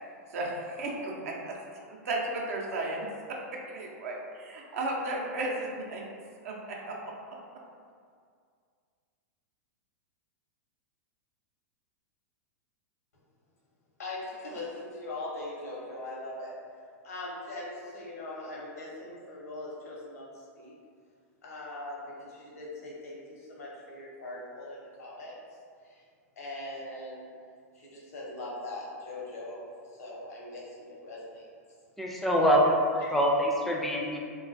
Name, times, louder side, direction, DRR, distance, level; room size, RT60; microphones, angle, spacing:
voice 1, 0.3-1.6 1.9-3.0 3.3-6.0 6.4-7.1, right 2 dB, 70° right, -1 dB, 0.5 m, -34 dB
voice 2, 14.0-16.5 17.0-20.7 21.4-25.4 25.8-26.0 26.4-27.2 27.7-29.6 29.9-31.4 33.0-33.1, left 2 dB, 85° left, -5 dB, 0.8 m, -41 dB
voice 3, 32.0-34.2, equal, ahead, -2 dB, 0.3 m, -25 dB
2.2 x 2.2 x 2.5 m, 2.1 s
hypercardioid pair, 110°, 8 cm